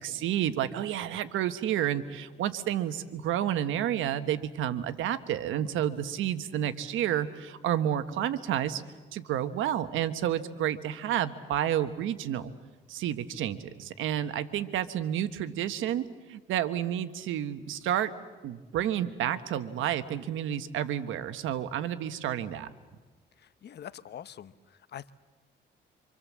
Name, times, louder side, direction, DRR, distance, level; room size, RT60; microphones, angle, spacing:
voice 1, 0.0-8.8 9.1-12.5 12.9-18.1 18.4-22.7, right 11 dB, 85° right, 11 dB, 1.3 m, -30 dB
voice 2, 23.4-25.1, left 9 dB, 55° left, 15 dB, 1.0 m, -45 dB
27.0 x 26.0 x 7.4 m, 1.3 s
cardioid pair, 90°, 20 cm